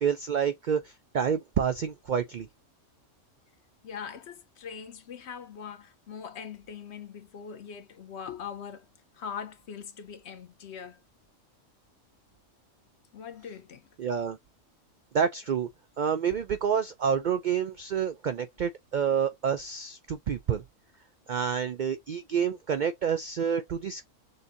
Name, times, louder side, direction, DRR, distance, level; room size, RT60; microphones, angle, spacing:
voice 1, 0.0-2.5 14.0-14.4 15.1-15.7 16.0-20.6 21.3-24.1, right 7 dB, 70° right, 0.4 m, -28 dB
voice 2, 3.8-11.0 13.1-13.9, left 7 dB, 60° left, 1.0 m, -42 dB
6.7 x 2.7 x 2.6 m
omnidirectional pair, 1.4 m